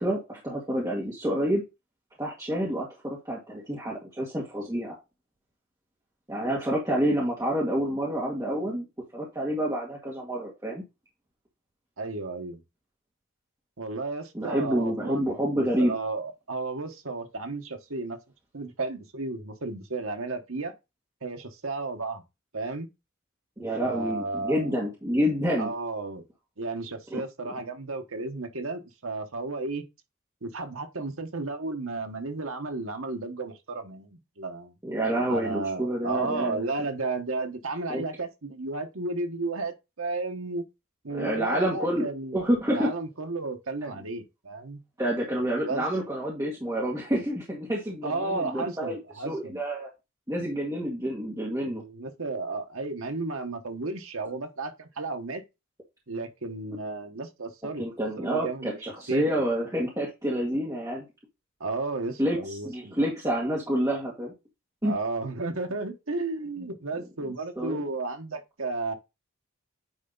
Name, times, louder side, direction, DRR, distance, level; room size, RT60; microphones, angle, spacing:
voice 1, 0.0-1.6 2.2-5.0 6.3-8.8 9.1-10.8 14.3-15.9 23.6-25.7 27.1-27.2 34.8-36.6 37.9-38.0 41.1-42.9 45.0-49.0 49.2-49.9 50.3-51.8 57.8-61.0 62.2-62.4 62.6-64.3 64.8-64.9 67.6-67.8, equal, 15° right, 1.9 m, -28 dB
voice 2, 12.0-12.6 13.8-18.2 18.5-20.7 21.2-22.2 22.5-22.9 23.8-24.8 25.6-26.2 26.6-29.8 30.4-34.7 35.3-40.6 41.0-42.4 42.7-44.8 45.6-45.9 48.0-49.6 51.7-55.4 56.1-57.8 58.2-58.8 59.1-59.2 61.6-63.0 64.8-68.9, right 3 dB, 75° right, 1.3 m, -33 dB
9.4 x 3.4 x 4.0 m
head